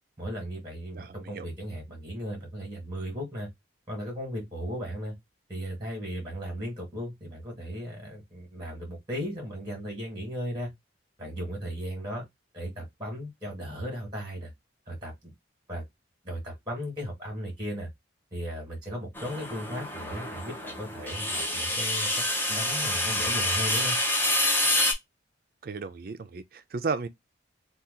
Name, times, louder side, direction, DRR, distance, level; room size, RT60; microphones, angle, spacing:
voice 1, 0.2-3.5 3.9-5.1 5.5-10.7 11.2-12.2 12.5-14.5 14.9-15.3 15.7-15.8 16.2-17.9 18.3-22.1 22.5-24.0, equal, 20° right, 1.5 m, -36 dB
voice 2, 0.9-1.5 25.6-27.1, right 4 dB, 50° right, 0.4 m, -34 dB
sound 1, 19.2-24.9, left 1 dB, 10° left, 0.6 m, -27 dB
2.8 x 2.3 x 3.6 m
head